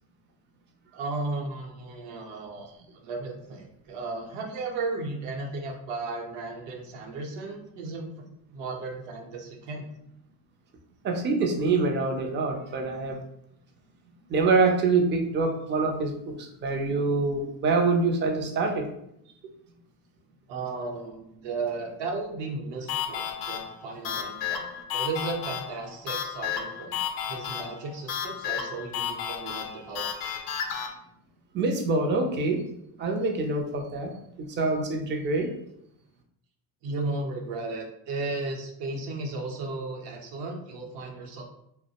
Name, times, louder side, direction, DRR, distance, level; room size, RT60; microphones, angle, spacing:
voice 1, 0.9-8.2 8.5-9.9 20.5-27.0 27.3-30.1 36.8-41.4, right 3 dB, 70° right, 1 dB, 0.7 m, -35 dB
voice 2, 11.0-13.2 14.3-18.9 30.2-30.3 31.5-32.6 33.0-35.5, right 3 dB, 30° right, 3 dB, 0.3 m, -25 dB
sound 1, 22.9-30.9, left 8 dB, 55° left, 0.5 m, -33 dB
2.3 x 2.0 x 2.8 m, 0.76 s
cardioid pair, 115°, 43 cm